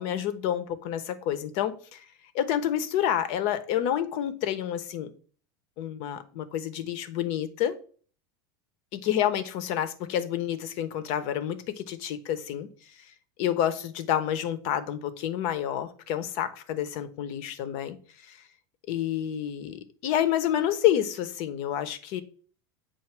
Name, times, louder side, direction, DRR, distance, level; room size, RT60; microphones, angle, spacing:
voice 1, 0.0-2.0 2.3-5.1 5.8-7.7 8.9-12.7 13.0-13.1 13.4-18.4 18.9-22.2, left 10 dB, 60° left, 0.9 m, -29 dB
7.7 x 2.6 x 5.9 m
supercardioid pair, 125°, 12 cm